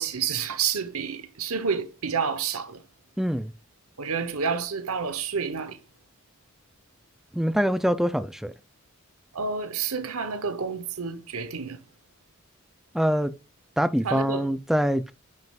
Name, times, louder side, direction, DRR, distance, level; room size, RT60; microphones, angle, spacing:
voice 1, 0.0-2.8 4.0-5.8 9.3-11.8 14.0-14.5, right 6 dB, 80° right, 1.0 m, -29 dB
voice 2, 3.2-3.5 7.3-8.5 12.9-13.3 13.8-15.1, equal, ahead, 0.3 m, -24 dB
9.2 x 5.4 x 2.4 m
head